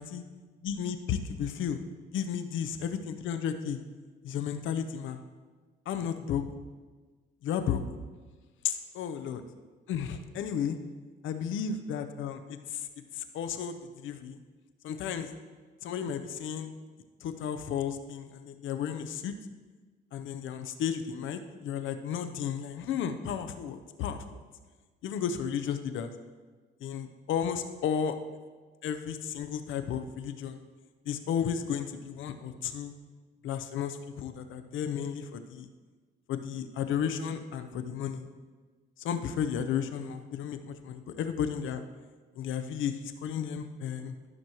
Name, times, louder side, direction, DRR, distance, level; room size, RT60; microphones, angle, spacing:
voice 1, 0.6-1.8 2.1-3.8 4.2-5.2 5.9-6.4 7.4-7.8 8.6-9.4 9.9-10.8 11.2-12.9 13.1-14.4 14.8-15.3 15.8-16.7 17.2-19.3 20.1-24.4 25.0-26.1 26.8-28.2 28.8-30.6 31.1-32.9 33.4-35.7 36.3-38.2 39.0-41.8 42.4-44.1, left 8 dB, 80° left, 9 dB, 0.7 m, -33 dB
13.5 x 6.2 x 3.0 m, 1.4 s
cardioid pair, 90°, 20 cm